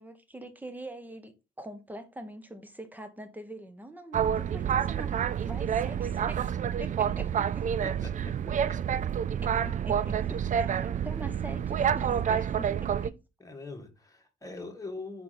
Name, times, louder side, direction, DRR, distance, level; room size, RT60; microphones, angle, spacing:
voice 1, 0.0-1.3 1.6-6.4 6.8-7.7 9.4-13.2, right 1 dB, 10° right, 1.2 m, -44 dB
Boat Water vehicle, 4.1-13.1, right 8 dB, 40° right, 0.4 m, -28 dB
voice 2, 13.4-15.2, left 3 dB, 15° left, 1.9 m, -42 dB
5.1 x 4.3 x 4.2 m
cardioid pair, 90°, 20 cm